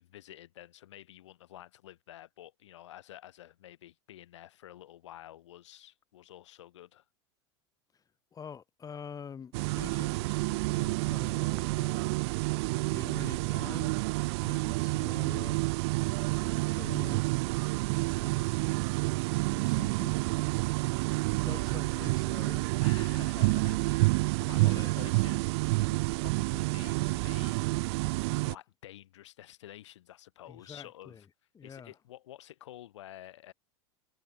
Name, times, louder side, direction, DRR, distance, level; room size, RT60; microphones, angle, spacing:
voice 1, 0.0-7.0 11.9-12.4 21.4-21.8 22.8-27.6 28.4-31.3 31.6-33.5, left 13 dB, 80° left, 6.3 m, -50 dB
voice 2, 8.3-12.2 12.9-14.0 14.3-15.6 16.4-17.2 18.1-18.9 19.5-20.2 21.4-22.7 24.6-25.0 28.2-28.3 30.5-31.2 31.5-31.9, left 7 dB, 25° left, 1.4 m, -46 dB
sound 1, 9.5-28.6, right 25 dB, 65° right, 0.4 m, -29 dB
hypercardioid pair, 100°, 15 cm